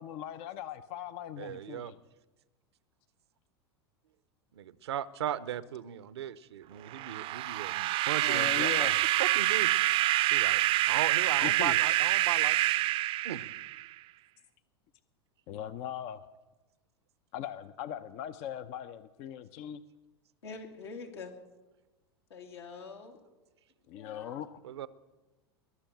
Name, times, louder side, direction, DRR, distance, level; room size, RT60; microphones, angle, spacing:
voice 1, 0.0-2.0 8.2-9.0 11.4-11.8 12.7-12.8 15.5-16.2 17.3-19.8 23.9-24.5, left 10 dB, 50° left, 12 dB, 0.7 m, -39 dB
voice 2, 1.4-1.9 4.5-8.9 9.2-9.7 10.3-12.6 13.2-13.5 24.6-24.9, right 10 dB, 75° right, 16 dB, 0.8 m, -37 dB
sound 1, 6.9-13.9, right 16 dB, 40° right, 0.6 m, -27 dB
voice 3, 20.4-21.3 22.3-23.2 23.9-24.4, left 4 dB, 80° left, 1 dB, 2.7 m, -45 dB
21.5 x 7.1 x 9.0 m, 1.1 s
hypercardioid pair, 95°, 14 cm